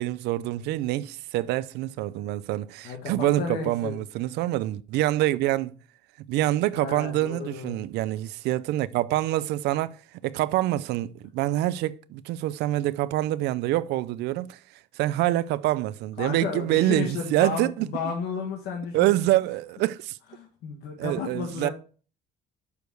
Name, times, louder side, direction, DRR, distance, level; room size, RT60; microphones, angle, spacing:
voice 1, 0.0-5.7 6.3-14.6 15.0-17.9 18.9-20.2 21.0-21.7, right 15 dB, 85° right, 0.5 m, -26 dB
voice 2, 2.8-4.0 6.7-7.8 16.2-19.2 20.4-21.7, left 5 dB, 75° left, 1.6 m, -33 dB
6.5 x 5.1 x 4.6 m
cardioid pair, 110°, 17 cm